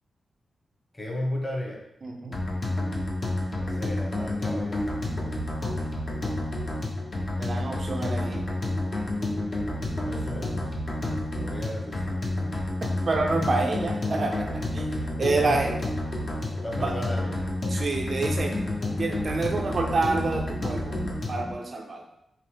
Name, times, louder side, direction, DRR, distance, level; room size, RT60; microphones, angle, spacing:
voice 1, 0.9-1.8 3.6-5.0 9.6-10.7 11.4-12.4 15.3-15.6 16.5-17.5, left 1 dB, 15° left, -2 dB, 1.1 m, -35 dB
voice 2, 2.0-2.4 7.4-8.4 13.1-14.8 15.2-15.7 16.8-16.9 17.7-18.6 19.0-21.0 21.3-22.0, right 3 dB, 50° right, 2 dB, 0.5 m, -28 dB
sound 1, 2.3-21.5, left 1 dB, 45° left, 0.9 m, -30 dB
5.4 x 2.0 x 3.4 m, 0.81 s
cardioid pair, 80°, 0 cm